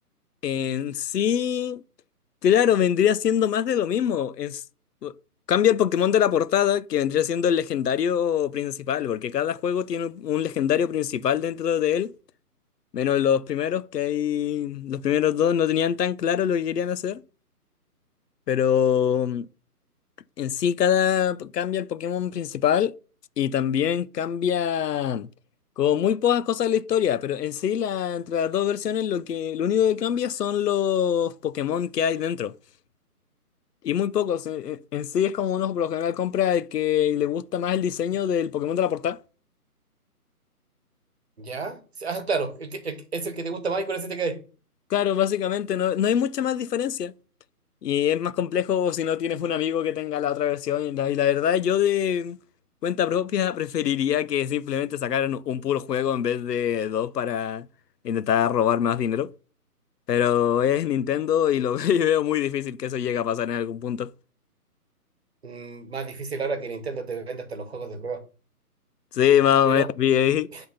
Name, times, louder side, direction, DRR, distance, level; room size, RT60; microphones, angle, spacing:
voice 1, 0.4-1.8 2.4-4.6 5.0-5.1 5.5-12.1 12.9-17.2 18.5-19.5 20.4-22.9 23.4-25.3 25.8-32.5 33.8-39.2 44.9-47.1 47.8-52.4 52.8-57.7 58.0-59.3 60.1-64.1 69.1-70.5, left 9 dB, 90° left, 0.6 m, -24 dB
voice 2, 41.4-44.4 65.4-68.2 69.7-69.9 70.5-70.6, right 4 dB, 45° right, 1.2 m, -31 dB
7.7 x 3.6 x 5.6 m
hypercardioid pair, 170°, 46 cm